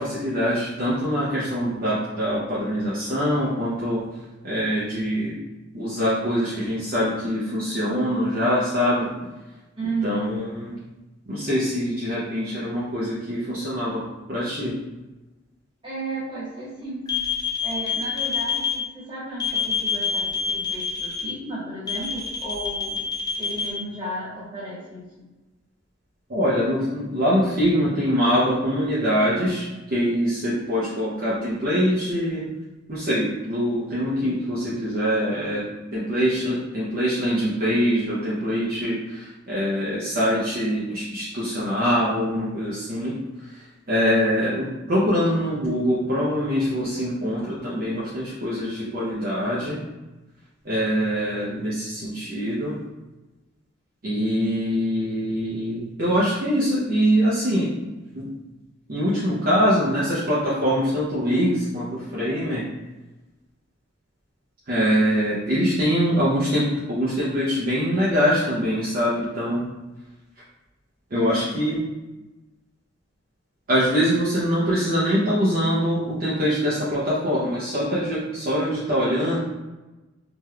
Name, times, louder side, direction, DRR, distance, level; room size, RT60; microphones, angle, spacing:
voice 1, 0.0-4.0 4.4-5.4 5.7-9.1 10.0-10.8 11.3-14.0 14.3-14.7 26.3-29.7 29.9-32.4 32.9-35.6 35.9-43.1 43.5-49.8 50.6-52.7 54.0-57.7 58.1-58.3 58.9-62.6 64.7-69.6 71.1-71.8 73.7-79.4, equal, 45° right, -9 dB, 0.6 m, -23 dB
voice 2, 9.8-10.3 15.8-17.2 17.6-23.0 23.4-25.3 71.1-71.8, right 2 dB, 25° right, -8 dB, 1.4 m, -33 dB
sound 1, 17.1-18.7 19.4-21.2 21.9-23.7, left 6 dB, 20° left, 0.5 m, -26 dB
3.3 x 2.9 x 2.3 m, 1.1 s
head